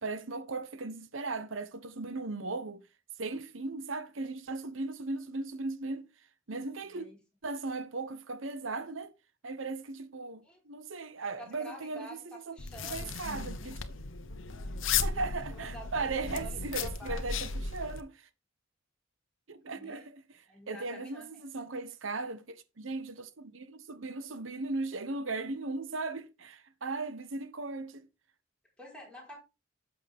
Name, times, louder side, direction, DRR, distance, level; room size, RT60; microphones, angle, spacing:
voice 1, 0.0-2.8 3.2-6.1 6.5-7.1 7.4-9.1 9.4-12.6 12.8-13.8 15.0-18.3 19.5-28.1, right 3 dB, 85° right, 1.1 m, -37 dB
voice 2, 6.9-7.2 10.4-10.6 11.4-12.2 12.5-13.1 15.5-17.2 19.7-20.1 20.5-21.3 28.8-29.4, equal, 5° left, 4.9 m, -49 dB
sound 1, 12.6-18.0, left 5 dB, 85° left, 1.1 m, -35 dB
11.5 x 7.4 x 3.6 m
head